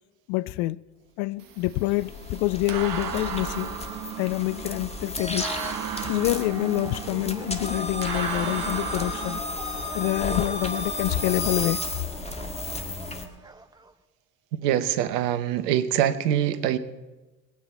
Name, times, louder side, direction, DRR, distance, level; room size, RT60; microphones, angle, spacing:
voice 1, 0.3-0.8 1.2-3.7 4.2-5.5 6.0-9.4 9.9-11.8, left 19 dB, 60° left, 0.6 m, -26 dB
sound 1, 1.4-9.4, right 9 dB, 45° right, 1.4 m, -36 dB
sound 2, 1.6-13.3, left 2 dB, 10° left, 1.8 m, -33 dB
sound 3, 6.2-13.9, right 3 dB, 10° right, 0.8 m, -43 dB
voice 2, 14.6-16.8, right 11 dB, 70° right, 1.0 m, -24 dB
21.5 x 9.4 x 4.3 m
hypercardioid pair, 65°, 49 cm